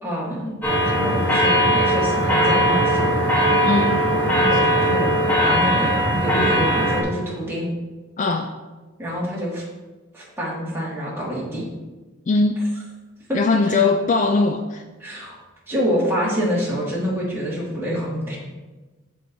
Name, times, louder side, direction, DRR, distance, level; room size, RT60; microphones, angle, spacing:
voice 1, 0.0-0.5 0.8-3.3 4.2-5.1 5.4-7.7 9.0-9.6 10.1-11.7 13.3-13.4 13.7-13.8 15.0-15.4 15.7-18.5, equal, 10° right, -7 dB, 2.1 m, -26 dB
sound 1, 0.6-7.0, equal, 10° left, 1.0 m, -19 dB
voice 2, 3.6-4.1 8.2-8.5 12.3-12.6 13.3-14.8, left 3 dB, 35° left, 5 dB, 0.3 m, -20 dB
12.0 x 4.5 x 2.7 m, 1.2 s
head